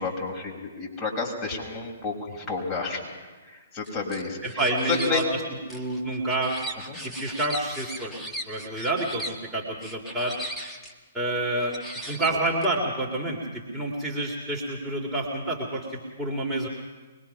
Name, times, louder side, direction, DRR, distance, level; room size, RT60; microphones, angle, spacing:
voice 1, 0.0-3.1 3.7-4.4 4.9-5.2 6.9-7.0, left 4 dB, 25° left, -1 dB, 6.2 m, -30 dB
sound 1, 3.9-5.2 5.7-9.3 9.8-10.9 11.6-12.6, equal, 5° left, 2.2 m, -38 dB
voice 2, 4.4-6.6 7.0-10.5 11.1-11.7 12.1-16.7, right 2 dB, 10° right, -3 dB, 3.0 m, -29 dB
24.0 x 21.5 x 5.8 m, 1.3 s
figure-of-eight pair, 125°, 0 cm